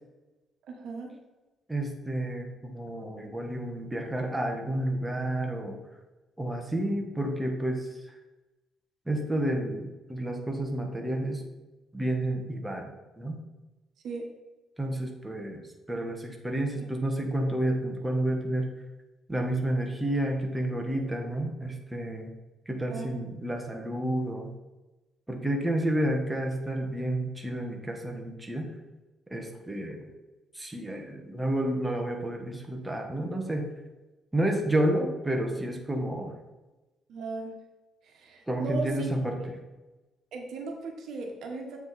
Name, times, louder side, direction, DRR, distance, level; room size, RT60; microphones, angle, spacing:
voice 1, 0.7-1.1 14.0-14.2 22.9-23.1 37.1-37.5 38.0-39.1 39.4-39.5 40.3-41.8, right 3 dB, 75° right, 2 dB, 1.3 m, -36 dB
voice 2, 1.7-5.8 6.4-7.9 9.1-11.4 11.9-13.4 14.8-18.7 19.3-22.3 22.7-24.5 25.3-28.7 29.3-30.1 30.5-33.7 34.3-36.3 38.5-39.4, right 1 dB, 10° right, 2 dB, 1.3 m, -30 dB
7.8 x 4.8 x 4.1 m, 1.1 s
cardioid pair, 90°, 0 cm